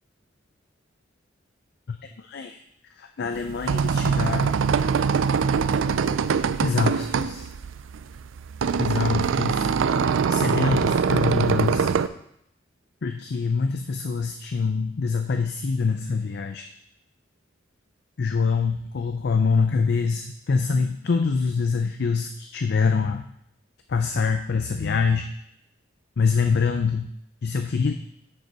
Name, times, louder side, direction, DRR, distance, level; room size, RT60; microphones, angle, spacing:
voice 1, 1.9-2.6 3.0-4.5 6.6-7.5 8.8-9.7 10.3-11.9 13.0-16.7 18.2-23.2 23.9-25.3 26.2-27.1 27.4-27.9, left 5 dB, 55° left, 6 dB, 0.5 m, -25 dB
sound 1, 3.4-12.1, right 6 dB, 85° right, 0.4 m, -23 dB
7.6 x 6.7 x 4.7 m, 0.75 s
head